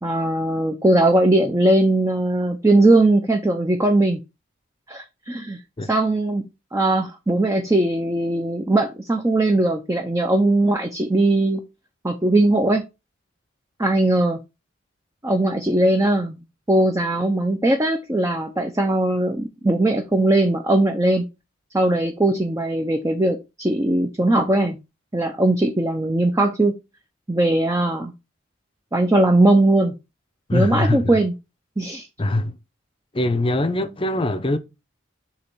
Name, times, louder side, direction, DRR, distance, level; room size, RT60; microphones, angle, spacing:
voice 1, 0.0-4.2 4.9-5.6 5.9-6.4 6.7-11.6 12.0-12.8 13.8-14.4 15.2-21.2 21.7-24.8 25.1-26.7 27.3-28.1 28.9-29.9 30.5-31.3 31.8-32.1, right 1 dB, 15° right, 0.6 m, -19 dB
voice 2, 30.5-31.2 32.2-32.6 33.1-34.6, left 1 dB, 25° left, 0.6 m, -22 dB
6.7 x 3.0 x 6.0 m
head